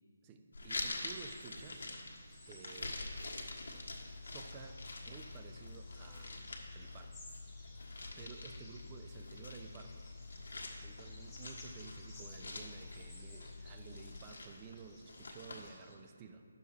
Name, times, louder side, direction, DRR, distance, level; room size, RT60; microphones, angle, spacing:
voice 1, 0.2-1.9 2.4-3.0 4.3-7.2 7.6-7.7 8.2-10.1 10.8-16.5, right 5 dB, 20° right, 6 dB, 0.5 m, -53 dB
sound 1, 0.5-15.7, left 2 dB, 85° left, 1.4 m, -47 dB
sound 2, 1.1-16.0, left 2 dB, 5° left, 1.3 m, -60 dB
sound 3, 2.8-14.2, left 4 dB, 65° left, 0.5 m, -51 dB
9.8 x 6.8 x 4.3 m, 2.1 s
hypercardioid pair, 165°, 0 cm